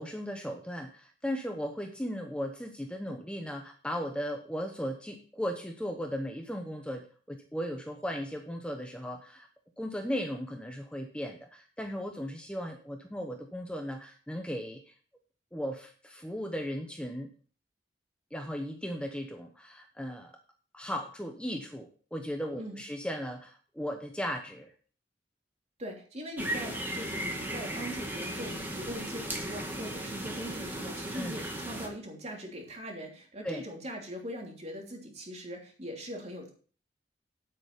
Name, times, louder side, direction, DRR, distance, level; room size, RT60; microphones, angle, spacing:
voice 1, 0.0-9.5 9.8-14.8 15.5-17.3 18.3-20.3 20.7-24.7 31.1-31.4 33.4-33.6, equal, 5° left, 3 dB, 1.0 m, -36 dB
voice 2, 25.8-36.5, equal, 40° right, 0 dB, 3.1 m, -41 dB
sound 1, 26.4-31.9, right 1 dB, 10° right, 2.0 m, -36 dB
8.9 x 8.4 x 5.1 m, 0.41 s
head